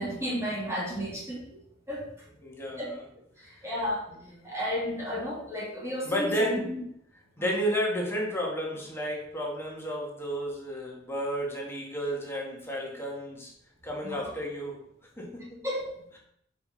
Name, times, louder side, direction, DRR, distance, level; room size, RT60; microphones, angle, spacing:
voice 1, 0.0-1.6 1.9-2.1 2.8-2.9 3.4-4.0 4.4-6.3 6.6-6.7 14.0-14.2 15.6-15.9, equal, 15° right, -5 dB, 3.1 m, -32 dB
voice 2, 2.4-3.0 3.4-3.5 4.1-4.5 6.1-6.7 7.4-13.5 13.8-14.8 15.2-15.6, equal, 15° left, -3 dB, 2.2 m, -32 dB
9.2 x 5.3 x 5.5 m, 0.71 s
head